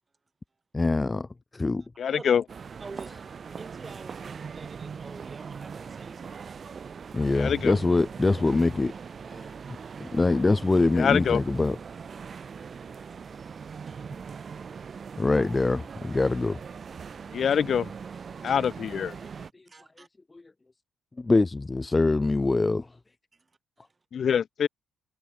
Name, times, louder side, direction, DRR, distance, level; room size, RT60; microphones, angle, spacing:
voice 1, 0.7-1.3 1.5-1.8 7.1-8.9 9.3-9.5 10.0-11.8 15.2-16.6 21.2-22.9, left 3 dB, 20° left, 0.7 m, -24 dB
voice 2, 2.0-2.4 7.3-7.8 10.9-11.4 17.3-17.9 18.4-19.1 24.1-24.7, left 7 dB, 55° left, 1.5 m, -24 dB
sound 1, 2.5-19.5, right 6 dB, 45° right, 2.5 m, -41 dB
voice 3, 2.8-3.1 3.4-6.6 13.9-14.0 15.2-15.3 17.5-17.6 18.5-18.6 19.7-20.1, right 4 dB, 25° right, 6.1 m, -47 dB
cardioid pair, 90°, 0 cm